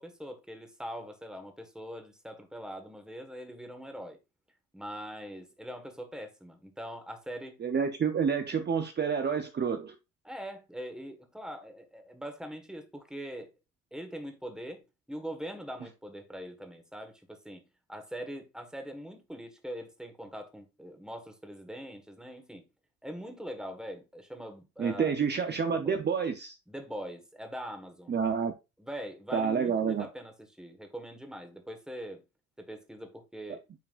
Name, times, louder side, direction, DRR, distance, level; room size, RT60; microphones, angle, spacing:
voice 1, 0.0-4.2 4.7-7.5 10.2-13.5 13.9-22.6 23.0-25.2 25.7-26.0 26.7-28.2 28.8-32.2 32.6-33.6, equal, ahead, 1.6 m, -42 dB
voice 2, 7.6-9.9 24.8-26.5 28.1-28.5 29.3-30.1, right 6 dB, 35° right, 0.7 m, -28 dB
9.2 x 4.8 x 2.5 m
cardioid pair, 90°, 30 cm